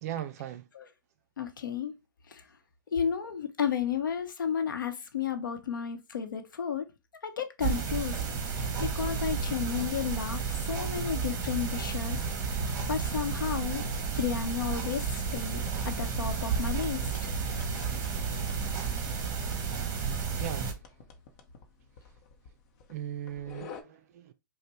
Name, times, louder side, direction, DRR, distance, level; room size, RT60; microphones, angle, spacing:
voice 1, 0.0-0.7 13.9-14.1 20.4-20.8 22.9-24.3, right 11 dB, 50° right, 0.4 m, -38 dB
voice 2, 1.4-1.9 2.3-2.4 2.9-6.9 7.2-8.2 8.5-10.4 10.7-12.3 12.9-13.8 14.1-17.3, left 7 dB, 80° left, 0.8 m, -32 dB
sound 1, 7.6-20.7, right 5 dB, 30° right, 1.0 m, -32 dB
sound 2, 15.3-23.8, left 5 dB, 45° left, 0.7 m, -50 dB
5.2 x 2.1 x 2.9 m
hypercardioid pair, 125°, 11 cm